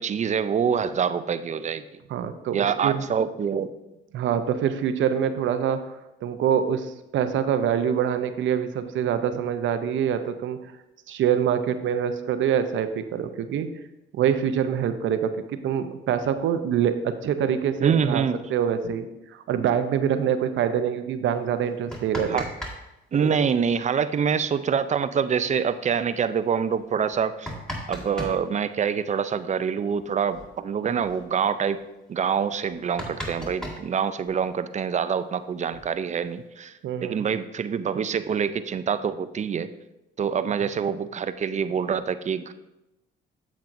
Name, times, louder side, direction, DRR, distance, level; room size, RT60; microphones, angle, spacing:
voice 1, 0.0-1.8 2.5-3.7 17.8-18.4 22.3-22.5 23.1-27.5 27.9-31.8 32.1-36.7 37.0-39.7 40.2-42.5, right 7 dB, 35° right, 12 dB, 0.5 m, -25 dB
voice 2, 2.1-3.0 4.1-5.8 6.2-10.6 11.1-13.7 14.1-15.3 15.6-18.2 18.5-19.1 19.3-22.4 36.8-37.2, right 8 dB, 75° right, 10 dB, 0.7 m, -25 dB
sound 1, 21.7-22.8 23.0-23.1 24.9-25.0 25.3-25.4 26.1-26.2 27.0-28.4 29.9-30.0 30.3-30.5 30.8-31.2 31.7-31.8 32.2-32.3 32.6-34.5 35.4-36.3, equal, 5° left, 1.9 m, -36 dB
8.9 x 7.4 x 2.6 m, 0.96 s
cardioid pair, 90°, 20 cm